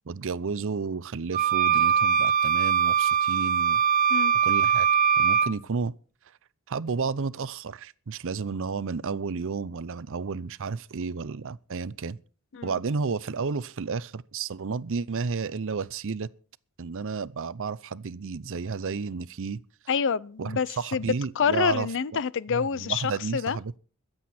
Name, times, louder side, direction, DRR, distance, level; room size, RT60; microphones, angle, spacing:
voice 1, 0.1-3.8 4.4-4.9 5.2-5.9 6.7-12.2 12.6-16.3 16.8-19.6 20.4-21.9 22.5-23.8, right 5 dB, 60° right, 0.6 m, -32 dB
sound 1, 1.3-5.5, right 7 dB, 40° right, 0.8 m, -22 dB
voice 2, 19.9-21.1 21.4-23.6, left 6 dB, 60° left, 0.5 m, -27 dB
22.5 x 7.9 x 4.3 m
head